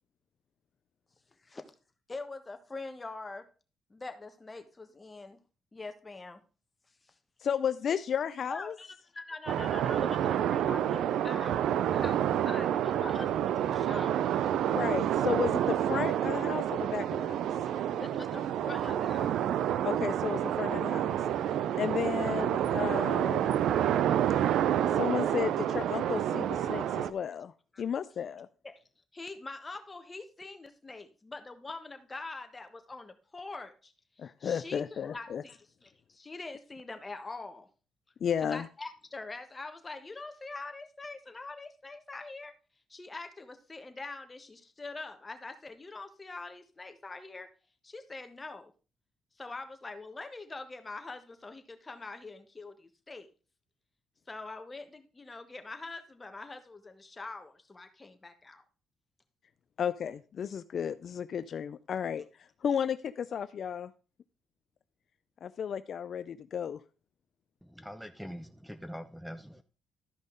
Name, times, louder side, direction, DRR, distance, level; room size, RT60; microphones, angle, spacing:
voice 1, 2.1-3.5 3.9-5.4 5.7-6.4 7.0-7.1 8.5-14.3 17.9-19.4 26.7-26.8 27.7-27.8 28.6-28.8 29.1-33.9 34.2-37.7 38.4-42.5 42.9-47.5 47.8-48.7 49.4-53.3 54.3-58.6, left 3 dB, 25° left, 1.3 m, -44 dB
voice 2, 7.4-8.7 14.6-17.5 19.8-21.2 21.8-23.6 24.9-27.5 27.8-28.5 34.2-35.4 38.2-38.7 59.8-62.2 62.6-63.9 65.4-66.8, left 8 dB, 55° left, 0.4 m, -33 dB
Sandy Beach, 9.5-27.1, right 10 dB, 80° right, 0.5 m, -29 dB
voice 3, 67.6-69.6, equal, ahead, 0.6 m, -43 dB
12.5 x 5.4 x 3.9 m
cardioid pair, 90°, 0 cm